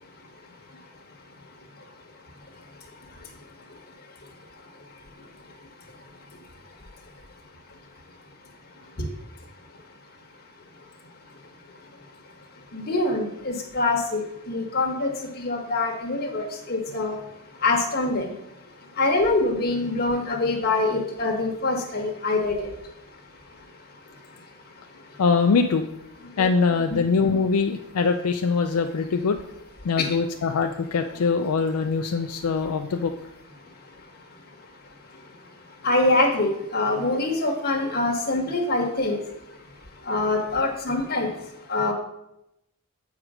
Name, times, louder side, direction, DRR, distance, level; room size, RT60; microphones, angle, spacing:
voice 1, 12.7-14.2 14.5-15.1 15.4-17.2 17.6-18.3 19.0-22.7 26.4-26.5 26.9-27.0 30.0-30.1 35.8-39.2 40.1-41.3 41.7-41.9, left 2 dB, 45° left, 1 dB, 1.3 m, -24 dB
voice 2, 25.2-25.9 26.4-29.4 29.8-33.1, left 5 dB, 80° left, 5 dB, 0.4 m, -23 dB
7.5 x 4.8 x 4.9 m, 0.85 s
head